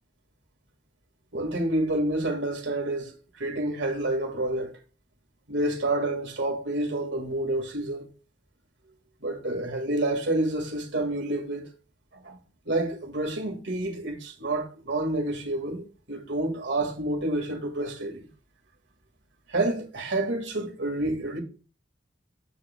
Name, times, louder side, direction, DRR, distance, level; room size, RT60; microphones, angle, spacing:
voice 1, 1.3-4.7 5.5-8.1 9.2-11.7 12.1-12.4 12.7-18.3 19.5-21.4, right 1 dB, 75° right, 1.9 m, -29 dB
9.7 x 7.2 x 2.2 m
head